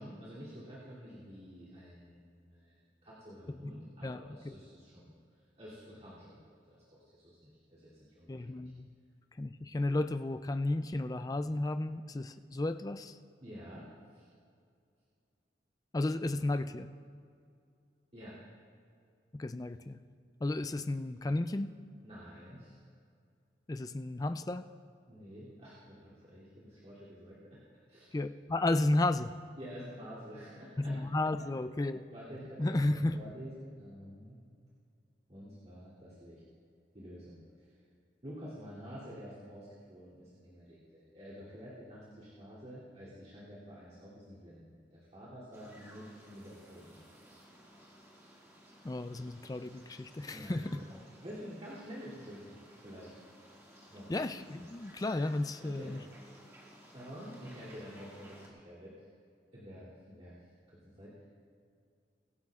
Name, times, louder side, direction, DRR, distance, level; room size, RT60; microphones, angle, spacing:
voice 1, 0.0-5.1 5.6-8.7 13.4-14.3 18.1-18.3 22.0-22.8 25.1-27.6 27.9-28.1 29.6-31.0 32.1-34.4 35.3-36.4 36.9-37.7 38.2-47.0 50.3-50.9 51.2-53.1 53.9-54.1 55.6-56.1 56.9-59.0 59.5-60.3 60.7-61.3, equal, 35° right, -10 dB, 2.9 m, -49 dB
voice 2, 8.3-8.9 9.4-13.2 15.9-16.9 19.3-20.0 20.4-21.7 23.7-24.6 28.1-29.3 30.8-32.1 32.6-33.2 48.8-50.8 54.1-56.0, left 2 dB, 20° left, 10 dB, 0.4 m, -33 dB
sound 1, 45.5-58.5, equal, 15° right, 2.0 m, -57 dB
23.5 x 12.0 x 2.4 m, 2.3 s
head